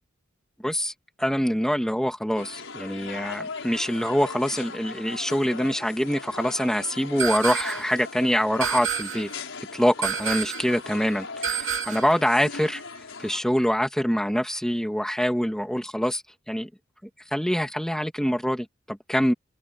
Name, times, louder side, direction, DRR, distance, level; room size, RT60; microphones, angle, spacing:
voice 1, 0.6-0.9 1.2-9.3 9.7-12.8 13.2-16.2 16.5-16.7 17.3-19.3, equal, 5° left, 2.6 m, -25 dB
sound 1, 2.4-13.4, left 4 dB, 75° left, 5.8 m, -39 dB
sound 2, 7.2-7.9 8.6-9.3 10.0-10.7 11.4-12.2, right 7 dB, 80° right, 2.4 m, -29 dB
open air
head